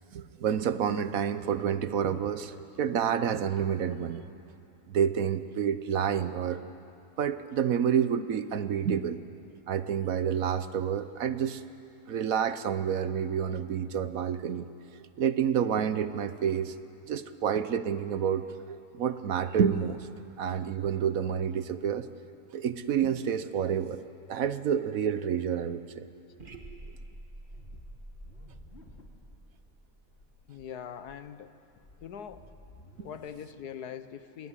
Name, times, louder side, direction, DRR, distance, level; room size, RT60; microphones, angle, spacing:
voice 1, 0.1-4.2 4.9-6.6 7.2-9.2 9.7-11.6 12.1-14.7 15.0-16.7 17.1-20.1 20.4-22.1 22.5-24.0 24.3-26.1, right 8 dB, 65° right, 12 dB, 1.2 m, -29 dB
sound 1, 26.4-30.5, right 2 dB, 35° right, 1.7 m, -48 dB
sound 2, 27.5-29.4 29.7-29.8 30.1-30.6 31.0-33.2, left 2 dB, 40° left, 2.6 m, -54 dB
voice 2, 30.5-31.5 32.0-32.5 33.0-34.5, left 8 dB, 80° left, 12 dB, 1.5 m, -42 dB
26.0 x 19.0 x 9.9 m, 2.7 s
omnidirectional pair, 1.7 m